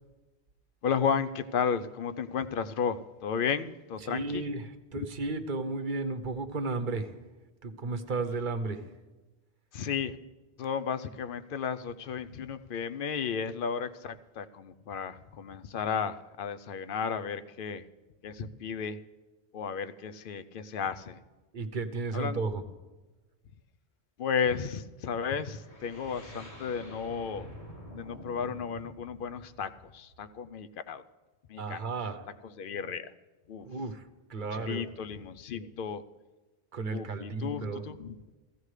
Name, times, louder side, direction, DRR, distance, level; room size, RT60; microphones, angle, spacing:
voice 1, 0.8-4.4 5.0-5.1 9.7-10.2 10.6-17.8 18.2-19.0 19.5-21.2 22.1-22.4 24.2-27.5 27.9-31.0 31.5-31.8 32.6-33.1 33.5-33.7 34.5-36.0 36.9-38.2, left 6 dB, 60° left, 12 dB, 0.7 m, -33 dB
voice 2, 4.0-7.1 7.6-8.8 21.5-22.6 31.6-32.2 33.7-34.9 36.7-37.8, right 3 dB, 50° right, 8 dB, 0.9 m, -34 dB
sound 1, 25.5-30.4, equal, 85° left, 2.7 m, -48 dB
15.5 x 15.0 x 3.2 m, 1.2 s
omnidirectional pair, 1.1 m